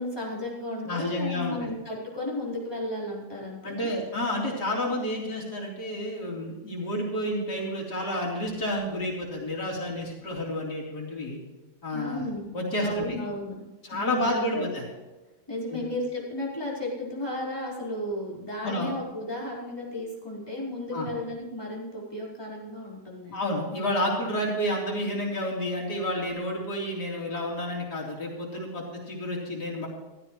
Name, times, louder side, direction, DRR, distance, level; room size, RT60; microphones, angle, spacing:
voice 1, 0.0-3.9 11.9-12.5 12.8-14.6 15.5-23.4, left 1 dB, 15° left, -5 dB, 4.5 m, -34 dB
voice 2, 0.8-1.7 3.6-11.4 11.8-12.2 12.5-13.2 13.8-14.8 15.7-15.8 18.6-18.9 20.9-21.1 23.3-29.9, left 1 dB, 65° left, -3 dB, 4.2 m, -30 dB
16.0 x 13.5 x 3.1 m, 1.1 s
omnidirectional pair, 1.9 m